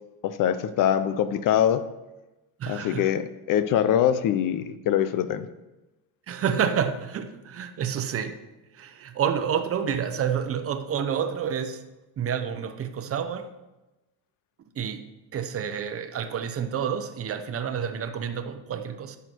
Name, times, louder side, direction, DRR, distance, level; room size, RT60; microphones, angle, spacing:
voice 1, 0.2-1.8 2.7-5.5, left 10 dB, 50° left, 13 dB, 0.7 m, -23 dB
voice 2, 2.6-3.1 6.3-8.4 8.7-11.8 12.2-13.5 14.8-19.2, right 8 dB, 35° right, 9 dB, 0.8 m, -29 dB
10.5 x 7.0 x 4.5 m, 1.0 s
cardioid pair, 130°, 40 cm